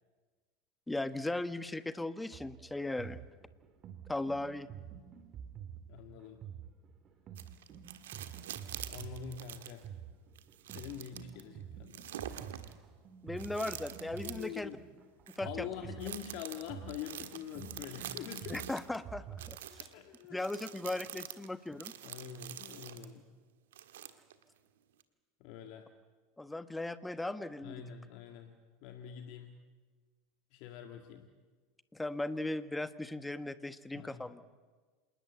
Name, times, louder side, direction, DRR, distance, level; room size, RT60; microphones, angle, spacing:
voice 1, 0.9-3.2 4.1-4.7 13.2-14.7 15.3-15.9 18.5-19.9 20.3-21.9 26.4-27.8 31.9-34.4, left 2 dB, 10° left, 13 dB, 1.3 m, -38 dB
sound 1, 2.3-19.6, right 9 dB, 40° right, 2.6 m, -48 dB
voice 2, 5.9-6.4 8.9-9.8 10.7-12.1 14.2-14.8 15.4-18.7 19.8-20.5 22.0-23.3 25.4-25.9 27.6-28.5 28.8-29.6 30.5-31.3 33.9-34.3, left 9 dB, 60° left, 6 dB, 1.9 m, -45 dB
sound 2, 7.4-9.9 10.4-11.4 11.9-12.7 13.4-14.6 15.3-15.4 16.0-19.0 19.4-23.1 23.7-24.4 25.0-25.1, right 11 dB, 75° right, 1.6 m, -46 dB
27.5 x 19.5 x 8.3 m, 1.4 s
hypercardioid pair, 80°, 0 cm